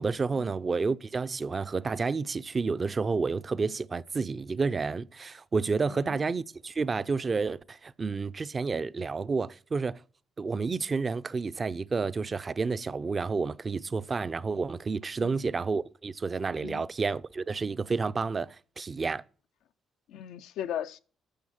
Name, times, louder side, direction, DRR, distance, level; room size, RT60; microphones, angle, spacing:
voice 1, 0.0-10.0 10.4-19.2, right 4 dB, 35° right, 0.5 m, -30 dB
voice 2, 5.9-6.2 15.2-15.5 16.6-16.8 20.1-21.0, left 10 dB, 85° left, 0.6 m, -38 dB
10.5 x 6.2 x 7.3 m
cardioid pair, 90°, 0 cm